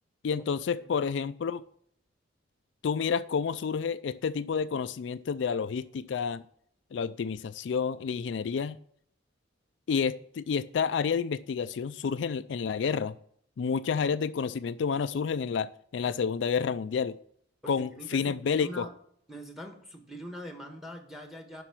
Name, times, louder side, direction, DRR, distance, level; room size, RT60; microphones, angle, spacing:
voice 1, 0.2-1.6 2.8-6.4 6.9-8.8 9.9-13.2 13.6-17.2 17.7-18.9, left 6 dB, 70° left, 13 dB, 0.4 m, -29 dB
voice 2, 0.7-1.1 17.6-18.9 19.3-21.6, equal, ahead, 4 dB, 1.5 m, -43 dB
10.0 x 5.8 x 6.1 m, 0.67 s
head